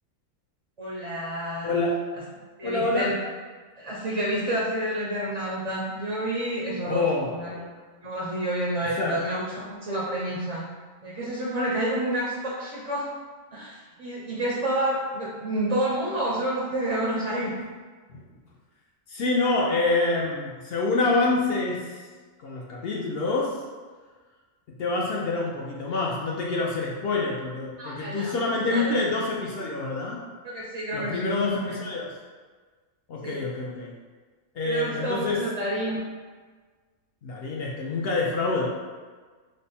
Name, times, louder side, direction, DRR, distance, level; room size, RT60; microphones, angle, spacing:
voice 1, 0.8-1.8 2.6-3.1 3.8-7.6 8.0-10.6 11.0-13.1 13.5-17.5 27.8-28.3 28.7-28.9 30.4-31.8 33.2-33.4 34.6-36.0, right 1 dB, 45° right, -6 dB, 0.4 m, -29 dB
voice 2, 2.6-3.1 6.9-7.6 9.0-9.2 18.1-18.2 19.1-22.0 22.4-23.5 24.8-30.2 30.9-32.1 33.1-33.9 34.5-35.4 37.2-38.7, left 3 dB, 65° left, -3 dB, 0.6 m, -26 dB
3.3 x 2.0 x 4.1 m, 1.4 s
omnidirectional pair, 1.4 m